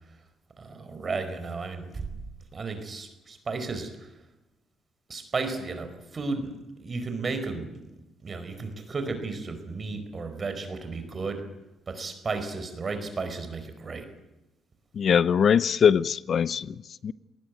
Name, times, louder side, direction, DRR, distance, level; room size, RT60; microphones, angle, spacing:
voice 1, 0.6-2.1 2.5-4.1 5.1-6.5 6.8-7.7 8.2-11.4 11.9-14.1, right 4 dB, 35° right, 4.8 m, -33 dB
voice 2, 14.9-17.1, left 7 dB, 55° left, 0.8 m, -22 dB
20.5 x 19.0 x 9.5 m
cardioid pair, 90°, 0 cm